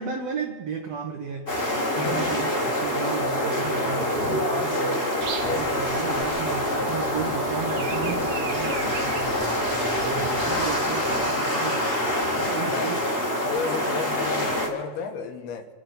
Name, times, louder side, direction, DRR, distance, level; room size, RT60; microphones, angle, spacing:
voice 1, 0.0-1.5 2.0-5.1 5.4-11.9 12.3-13.0, right 6 dB, 90° right, 3 dB, 1.4 m, -34 dB
sound 1, 1.5-14.7, left 1 dB, 25° left, 1.2 m, -26 dB
voice 2, 1.9-2.3 5.4-5.7 12.6-12.9 13.4-15.7, left 6 dB, 75° left, 7 dB, 3.1 m, -32 dB
Breathing, 5.2-11.3, right 6 dB, 70° right, 1.7 m, -39 dB
25.5 x 9.5 x 5.4 m, 1.5 s
omnidirectional pair, 4.7 m